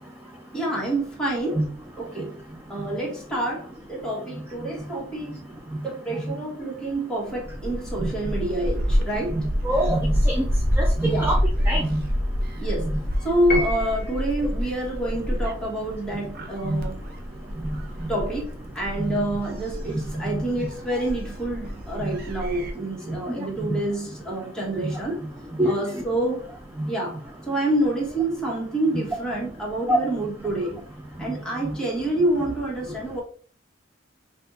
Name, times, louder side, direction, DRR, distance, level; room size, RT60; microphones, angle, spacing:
voice 1, 0.5-1.7 2.0-2.3 2.7-5.4 5.8-9.5 11.0-11.3 12.6-12.9 13.2-17.0 18.1-18.5 18.7-25.2 25.6-26.5 26.9-27.2 27.5-30.8 31.2-33.2, right 1 dB, 5° left, 1.5 m, -27 dB
Gull seagull, 7.3-22.7, equal, 50° right, 0.7 m, -28 dB
voice 2, 9.3-10.5 10.8-11.4 11.7-12.0 16.7-16.8 19.0-19.2 20.3-20.4 23.4-23.8 24.8-24.9 25.6-25.7 26.8-26.9 29.9-30.0, right 1 dB, 10° right, 0.5 m, -24 dB
Piano, 13.5-14.4, left 2 dB, 50° left, 0.8 m, -30 dB
5.6 x 2.6 x 2.6 m
head